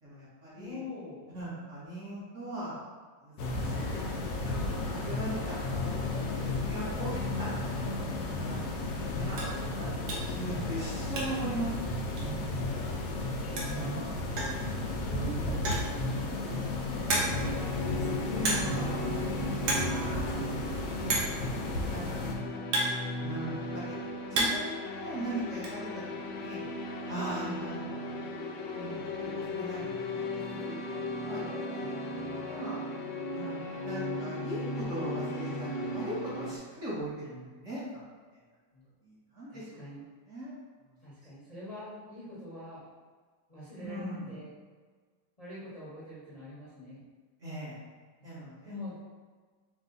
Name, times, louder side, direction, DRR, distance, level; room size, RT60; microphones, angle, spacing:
voice 1, 0.0-0.8 1.3-2.8 3.2-4.0 4.3-6.0 6.3-7.5 8.3-11.8 12.1-12.7 13.7-14.0 17.2-19.3 19.7-22.6 23.2-23.9 24.3-26.0 26.4-26.6 27.1-28.2 28.7-31.9 32.2-32.8 33.3-33.5 33.8-37.9 38.3-38.4 39.0-39.8 40.3-41.0 43.8-44.3 47.4-47.8 48.2-48.7, right 1 dB, 45° right, -9 dB, 1.5 m, -40 dB
voice 2, 0.5-1.2 13.5-14.0 15.0-16.9 23.5-23.9 25.9-26.2 27.4-27.6 33.3-33.7 38.7-38.8 39.5-40.0 41.0-42.8 43.5-44.5 45.4-47.0 48.2-49.0, left 1 dB, 25° left, -10 dB, 1.0 m, -45 dB
sound 1, 3.4-22.3, left 2 dB, 70° left, 1.0 m, -33 dB
sound 2, 9.4-9.6 10.1-10.4 10.7-11.5 11.8-11.9 12.2-12.3 13.3-13.4 13.6-13.9 14.4-14.7 15.5-16.0 16.5-16.6 17.1-17.6 18.4-18.9 19.1-19.3 19.6-20.0 20.2-20.3 21.1-21.4 22.2-23.5 24.0-24.8 25.0-25.7, right 2 dB, 75° right, 1.5 m, -31 dB
sound 3, 17.4-36.6, left 1 dB, 85° left, 1.3 m, -37 dB
4.8 x 2.4 x 3.9 m, 1.5 s
omnidirectional pair, 1.9 m